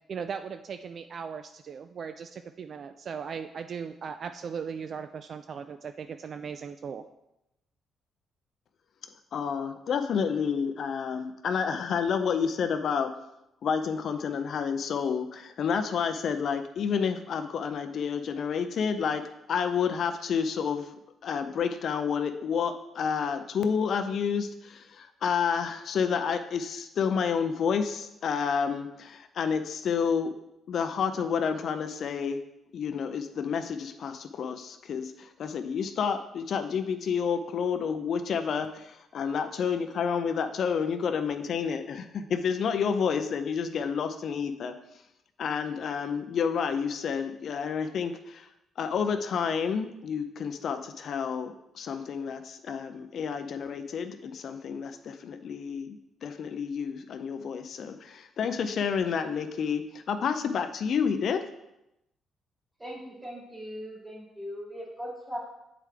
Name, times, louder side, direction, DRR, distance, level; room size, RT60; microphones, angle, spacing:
voice 1, 0.1-7.0, right 6 dB, 55° right, 9 dB, 0.3 m, -38 dB
voice 2, 9.3-13.1 13.6-19.2 19.5-20.9 21.2-30.3 30.7-32.4 32.7-44.7 45.4-48.5 48.8-61.4, left 6 dB, 60° left, 8 dB, 0.5 m, -30 dB
voice 3, 62.8-65.4, equal, 20° right, -3 dB, 2.5 m, -39 dB
7.4 x 4.7 x 3.4 m, 0.87 s
cardioid pair, 90°, 0 cm